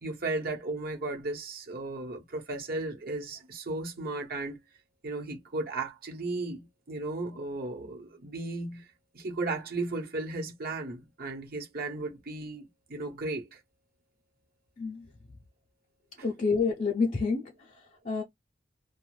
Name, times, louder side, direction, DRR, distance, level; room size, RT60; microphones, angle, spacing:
voice 1, 0.0-4.6 5.0-8.9 9.1-13.6, right 2 dB, 50° right, 1.0 m, -35 dB
voice 2, 16.2-17.5 18.0-18.2, left 4 dB, 40° left, 0.6 m, -28 dB
2.5 x 2.2 x 3.2 m
head